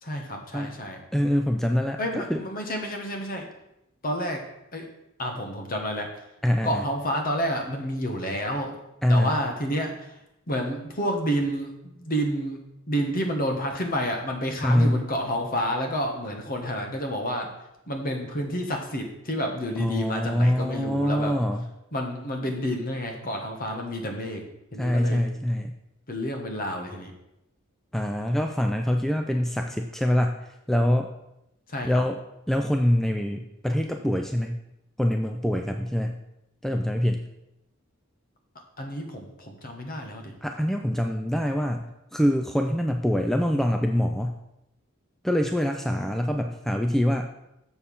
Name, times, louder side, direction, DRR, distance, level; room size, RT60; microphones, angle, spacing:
voice 1, 0.0-1.0 2.0-3.5 4.0-4.5 4.7-4.9 5.2-6.1 6.6-8.7 9.1-10.1 10.5-12.6 12.9-17.5 17.9-21.4 21.9-24.4 24.7-25.2 26.1-27.1 31.7-32.0 38.8-40.3, equal, 45° left, 3 dB, 1.4 m, -29 dB
voice 2, 1.1-2.4 6.4-6.8 9.0-9.3 14.6-15.0 19.8-21.6 24.8-25.7 27.9-30.4 30.7-31.1 31.8-32.2 32.5-34.6 35.0-36.2 36.6-37.3 40.4-44.4 45.2-47.2, equal, ahead, 4 dB, 0.4 m, -24 dB
7.0 x 6.6 x 5.4 m, 0.85 s
head